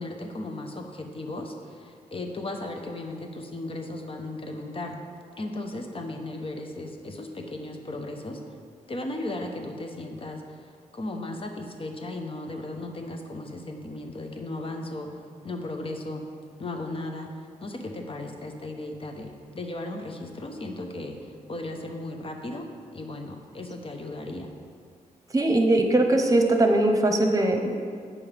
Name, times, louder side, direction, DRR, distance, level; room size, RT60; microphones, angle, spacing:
voice 1, 0.0-4.9 5.4-8.4 8.9-10.6 10.9-15.1 15.4-16.3 16.6-17.3 17.6-22.7 22.9-24.5, left 2 dB, 40° left, 3 dB, 1.0 m, -36 dB
voice 2, 25.3-27.7, right 1 dB, 25° right, 4 dB, 1.0 m, -21 dB
8.4 x 5.4 x 5.2 m, 2.2 s
cardioid pair, 75°, 14 cm